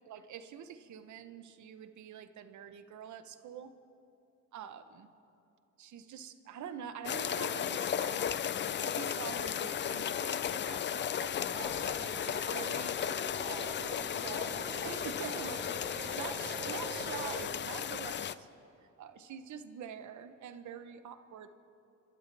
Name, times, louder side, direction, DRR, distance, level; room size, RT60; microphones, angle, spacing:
voice 1, 0.1-3.7 4.5-5.1 5.8-8.5 8.9-12.9 13.4-13.8 14.1-18.5 19.0-21.5, right 8 dB, 70° right, 10 dB, 1.0 m, -46 dB
sound 1, 7.0-18.3, left 9 dB, 40° left, 0.4 m, -35 dB
sound 2, 11.6-17.4, right 2 dB, 30° right, 3.6 m, -45 dB
30.0 x 12.5 x 3.4 m, 2.7 s
cardioid pair, 90°, 30 cm